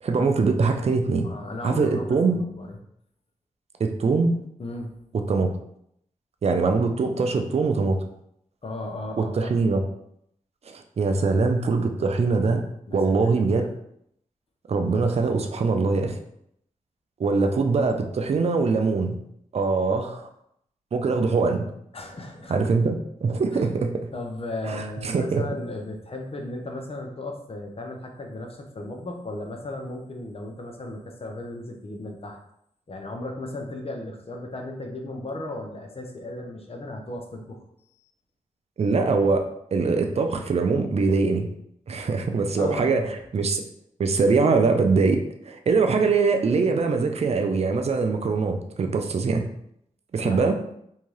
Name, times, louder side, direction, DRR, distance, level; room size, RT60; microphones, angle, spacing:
voice 1, 0.0-1.3 1.6-2.4 3.8-4.4 5.3-5.5 6.4-8.0 9.2-9.8 10.7-13.7 14.7-16.2 17.2-19.2 19.5-20.3 20.9-21.6 22.5-23.9 24.7-25.4 38.8-41.5 41.9-43.6 44.0-45.2 45.4-49.4 50.1-50.6, right 4 dB, 50° right, 5 dB, 0.4 m, -23 dB
voice 2, 1.2-2.8 4.6-5.0 8.6-9.5 12.9-13.7 21.9-22.5 23.5-23.7 24.1-32.4 32.9-37.6 42.6-43.1 50.2-50.5, left 2 dB, 45° left, 2 dB, 0.6 m, -35 dB
2.7 x 2.2 x 3.1 m, 0.73 s
cardioid pair, 50°, 14 cm